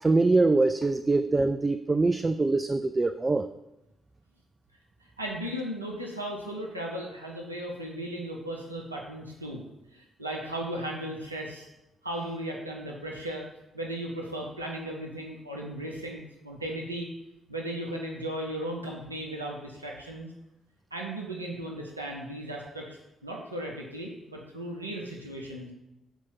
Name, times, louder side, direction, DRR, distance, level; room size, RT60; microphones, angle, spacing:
voice 1, 0.0-3.5, right 3 dB, 25° right, 10 dB, 0.3 m, -23 dB
voice 2, 5.2-9.6 9.9-11.7 12.0-13.4 13.7-17.1 17.5-20.3 20.9-25.7, right 1 dB, 85° right, -1 dB, 0.8 m, -36 dB
7.2 x 4.5 x 5.9 m, 0.91 s
figure-of-eight pair, 40°, 0 cm